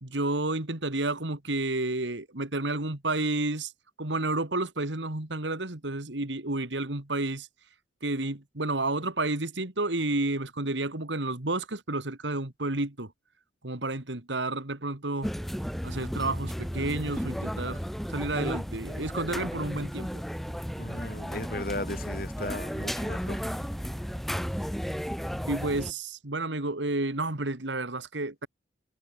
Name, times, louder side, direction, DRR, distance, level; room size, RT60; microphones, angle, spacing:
voice 1, 0.0-3.7 4.0-7.5 8.0-13.1 13.6-15.3 15.8-17.8 18.1-20.2 25.5-28.5, right 2 dB, 85° right, 2.6 m, -31 dB
sound 1, 15.2-25.9, equal, ahead, 1.9 m, -34 dB
voice 2, 20.8-23.4, left 1 dB, 50° left, 4.9 m, -36 dB
head